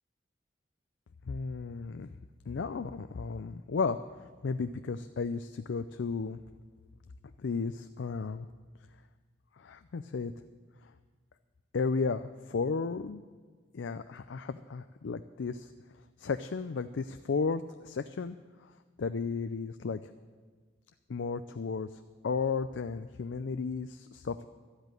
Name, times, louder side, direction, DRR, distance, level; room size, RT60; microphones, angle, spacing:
voice 1, 1.3-2.1 2.5-4.0 4.4-6.4 7.4-8.5 9.6-10.3 11.7-13.2 13.7-15.7 16.2-18.4 19.0-20.0 21.1-21.9 22.2-24.4, left 4 dB, 85° left, 10 dB, 0.5 m, -34 dB
12.5 x 8.1 x 9.1 m, 1.5 s
head